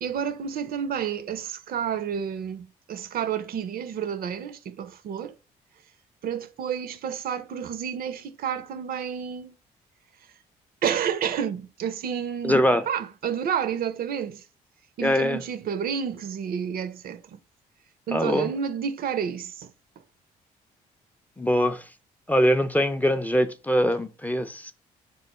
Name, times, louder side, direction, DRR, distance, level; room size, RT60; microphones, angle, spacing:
voice 1, 0.0-5.4 6.2-9.6 10.8-14.4 15.0-17.4 18.1-19.7, right 8 dB, 55° right, 0.4 m, -30 dB
voice 2, 12.4-12.9 15.0-15.4 18.1-18.5 21.4-21.9 22.3-24.7, equal, 10° left, 0.4 m, -22 dB
3.0 x 2.0 x 4.1 m
hypercardioid pair, 55°, 19 cm